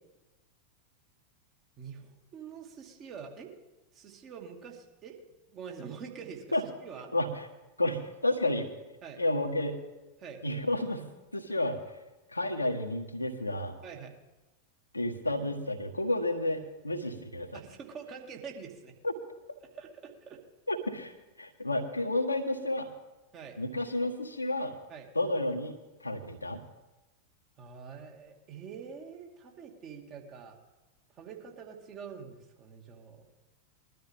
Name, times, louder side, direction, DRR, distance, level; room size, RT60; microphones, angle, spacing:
voice 1, 1.8-3.5 3.9-5.2 5.5-6.5 6.8-7.1 9.0-9.2 10.2-10.4 13.8-14.2 17.5-18.9 19.8-20.4 23.3-23.6 24.9-25.1 27.6-30.6 31.2-33.2, right 6 dB, 35° right, 1 dB, 2.4 m, -45 dB
voice 2, 7.1-7.5 7.8-8.7 9.2-9.7 10.4-11.0 11.3-11.8 12.3-13.7 14.9-17.6 19.0-19.1 20.7-21.1 21.4-22.9 23.6-24.7 25.1-25.7 26.0-26.6, left 1 dB, 85° left, 3 dB, 1.5 m, -31 dB
21.5 x 12.5 x 3.6 m, 1.1 s
figure-of-eight pair, 90°, 0 cm